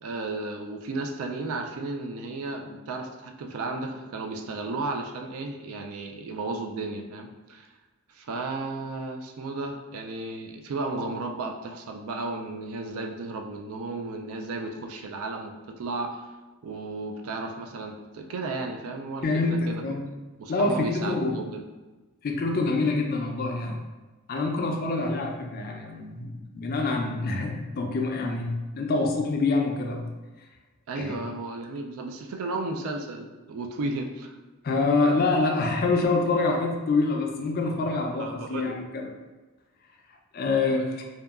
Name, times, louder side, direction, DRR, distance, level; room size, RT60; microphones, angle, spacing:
voice 1, 0.0-7.7 8.1-16.3 16.6-19.8 20.4-21.6 30.9-34.3 38.2-38.8 40.7-41.0, right 3 dB, 70° right, 4 dB, 0.3 m, -34 dB
voice 2, 19.2-20.0 20.5-21.4 22.2-23.8 24.3-30.0 30.9-31.2 34.6-39.1 40.3-41.0, left 3 dB, 40° left, 2 dB, 0.3 m, -26 dB
2.7 x 2.2 x 2.3 m, 1.2 s
head